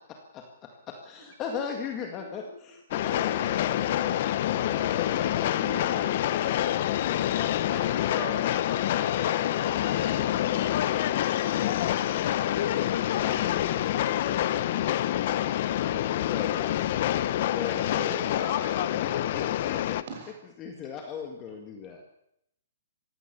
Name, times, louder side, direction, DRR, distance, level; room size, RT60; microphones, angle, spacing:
voice 1, 0.0-6.1 7.0-8.0 8.9-13.9 14.2-15.1 16.3-16.7 17.5-18.4 18.9-20.0 20.6-22.0, left 7 dB, 20° left, 3 dB, 1.9 m, -39 dB
voice 2, 1.2-1.6 2.2-2.5 4.8-7.0 7.7-10.2 13.6-13.8, right 1 dB, ahead, -4 dB, 6.8 m, -45 dB
Train, 2.9-20.0, left 12 dB, 40° left, 0.9 m, -27 dB
voice 3, 12.9-13.3 15.2-15.3 15.6-16.0 18.0-19.0 20.1-20.4, right 3 dB, 45° right, 3 dB, 6.2 m, -42 dB
23.0 x 16.0 x 7.1 m, 0.78 s
hypercardioid pair, 165°, 0 cm